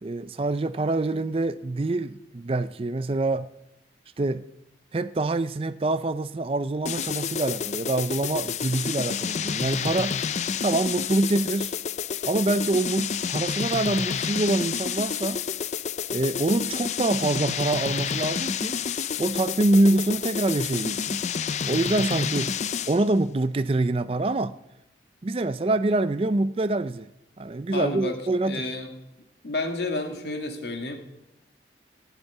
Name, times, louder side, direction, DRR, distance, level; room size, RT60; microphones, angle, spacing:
voice 1, 0.0-3.5 4.2-4.4 4.9-10.2 10.6-11.7 12.2-15.4 16.1-18.8 19.2-21.2 21.7-22.5 22.9-24.6 25.2-27.1 27.4-28.7, right 2 dB, 30° right, 0.4 m, -25 dB
sound 1, 6.9-23.1, left 7 dB, 40° left, 0.4 m, -29 dB
voice 2, 27.7-28.2 28.4-28.9 29.4-30.9, left 2 dB, 70° left, 2.0 m, -30 dB
15.5 x 8.1 x 9.2 m
head